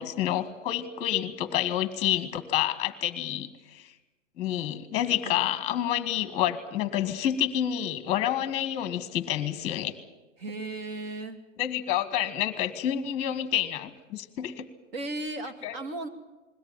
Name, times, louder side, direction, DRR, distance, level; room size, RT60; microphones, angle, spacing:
voice 1, 0.0-3.9 4.4-9.9 11.6-14.7 15.6-15.7, left 11 dB, 15° left, 12 dB, 1.3 m, -28 dB
voice 2, 10.4-11.4 14.9-16.1, right 2 dB, 50° right, 6 dB, 2.7 m, -36 dB
21.0 x 17.0 x 8.9 m, 1.1 s
supercardioid pair, 165°, 37 cm